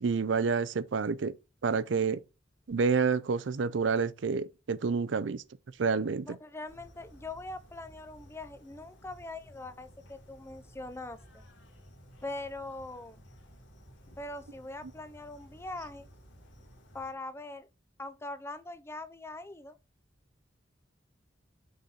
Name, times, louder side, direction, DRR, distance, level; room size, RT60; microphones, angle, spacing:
voice 1, 0.0-1.4 1.6-2.2 2.7-5.4 5.8-6.4, right 5 dB, 75° right, 0.5 m, -28 dB
voice 2, 6.2-11.4 12.2-13.2 14.2-16.1 16.9-17.7 18.0-19.8, left 2 dB, 15° left, 0.5 m, -42 dB
sound 1, 6.7-17.1, equal, 75° left, 2.0 m, -55 dB
6.4 x 4.0 x 4.2 m
head